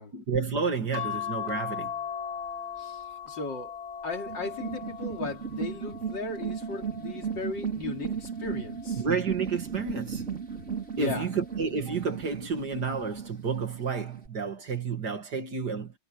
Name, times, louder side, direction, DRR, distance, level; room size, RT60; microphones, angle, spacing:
voice 1, 0.1-1.9 9.0-10.3 11.0-15.9, right 5 dB, 55° right, 2.9 m, -30 dB
sound 1, 0.9-7.6 8.2-9.6 10.8-11.3 11.6-11.7, left 8 dB, 20° left, 3.7 m, -39 dB
voice 2, 2.8-3.7 4.0-9.0 11.0-11.3, left 4 dB, 65° left, 3.6 m, -36 dB
sound 2, 4.3-14.3, right 6 dB, 35° right, 3.8 m, -36 dB
omnidirectional pair, 2.2 m